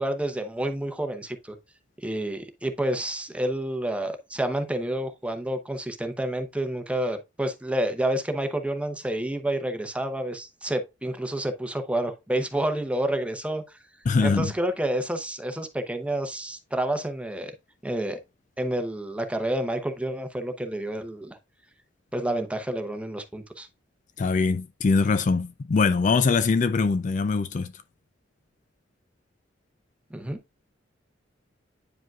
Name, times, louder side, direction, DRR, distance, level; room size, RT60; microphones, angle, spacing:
voice 1, 0.0-1.6 2.0-13.6 14.2-17.5 17.8-18.2 18.6-21.4 22.1-23.7 30.1-30.4, right 1 dB, 5° right, 0.8 m, -29 dB
voice 2, 14.1-14.5 24.2-27.7, left 4 dB, 40° left, 0.4 m, -22 dB
9.1 x 5.0 x 2.3 m
head